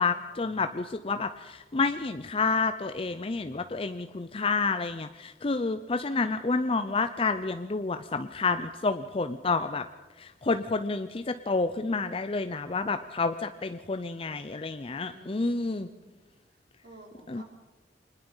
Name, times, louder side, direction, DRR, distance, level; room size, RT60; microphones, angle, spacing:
voice 1, 0.0-9.9 10.2-15.9 17.3-17.4, left 4 dB, 30° left, 10 dB, 0.6 m, -29 dB
voice 2, 14.9-16.1 16.5-17.4, right 1 dB, 60° right, 1 dB, 4.6 m, -53 dB
25.0 x 20.0 x 5.6 m, 1.3 s
head